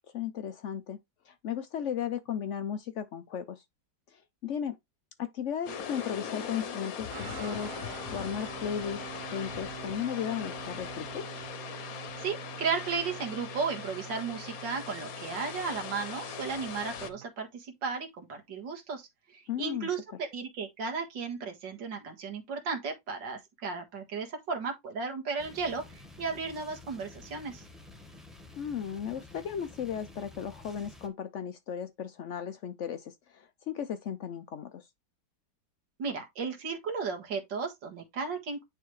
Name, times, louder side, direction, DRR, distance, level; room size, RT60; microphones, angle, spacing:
voice 1, 0.1-1.0 1.3-3.6 4.1-4.8 5.2-11.2 19.5-19.9 28.6-34.9, left 8 dB, 75° left, 0.6 m, -35 dB
sound 1, 5.7-17.1, left 7 dB, 60° left, 1.2 m, -40 dB
sound 2, 7.1-17.3, right 11 dB, 65° right, 1.2 m, -46 dB
voice 2, 12.2-27.6 36.0-38.6, right 5 dB, 85° right, 2.2 m, -35 dB
sound 3, 25.4-31.1, left 3 dB, ahead, 0.9 m, -51 dB
9.9 x 3.4 x 3.1 m
omnidirectional pair, 1.9 m